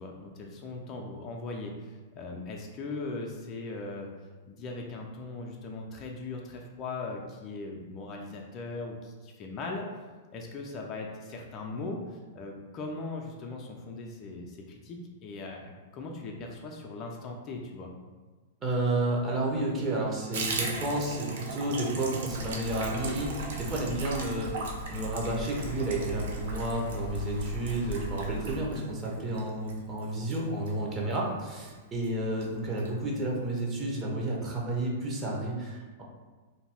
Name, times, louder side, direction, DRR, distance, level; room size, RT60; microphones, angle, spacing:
voice 1, 0.0-4.1 4.5-17.9 31.0-31.2, left 3 dB, 35° left, 0 dB, 0.4 m, -39 dB
voice 2, 18.6-23.3 23.6-24.6 24.9-36.0, right 1 dB, 25° right, -2 dB, 0.7 m, -31 dB
Water tap faucet / Bathtub (filling or washing), 20.3-31.3 31.6-31.8 32.0-32.1 32.4-32.9 33.2-33.3 33.6-33.7, right 3 dB, 60° right, 0.5 m, -38 dB
sound 1, 22.3-28.6, right 1 dB, 85° right, 1.1 m, -39 dB
2.5 x 2.3 x 3.4 m, 1.3 s
figure-of-eight pair, 100°, 0 cm